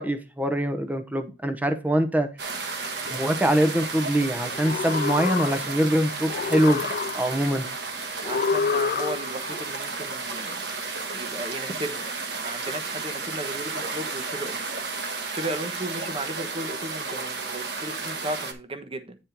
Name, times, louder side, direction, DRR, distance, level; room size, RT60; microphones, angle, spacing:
voice 1, 0.0-2.3 3.1-6.8 7.1-7.7, right 1 dB, 10° right, 0.9 m, -23 dB
sound 1, 2.4-18.5, right 4 dB, 70° right, 1.4 m, -33 dB
sound 2, 4.5-5.9 6.3-7.5 8.2-9.5, left 5 dB, 50° left, 0.3 m, -28 dB
voice 2, 8.2-10.6 11.1-12.1 12.3-14.6 15.3-19.2, right 1 dB, 30° right, 1.1 m, -35 dB
9.6 x 4.3 x 4.4 m
head